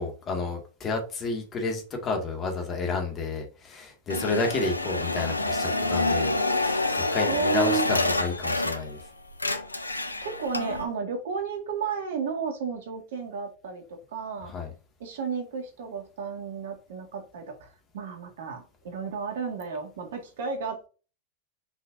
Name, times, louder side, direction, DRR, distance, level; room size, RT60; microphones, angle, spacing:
voice 1, 0.0-9.0 14.4-14.7, left 3 dB, 25° left, 2.2 m, -31 dB
sound 1, 4.1-9.0 9.3-10.8, left 2 dB, 80° left, 0.7 m, -27 dB
voice 2, 7.3-7.9 10.2-14.5 15.0-20.9, right 6 dB, 55° right, 2.0 m, -32 dB
6.2 x 5.5 x 2.7 m
figure-of-eight pair, 90°, 0 cm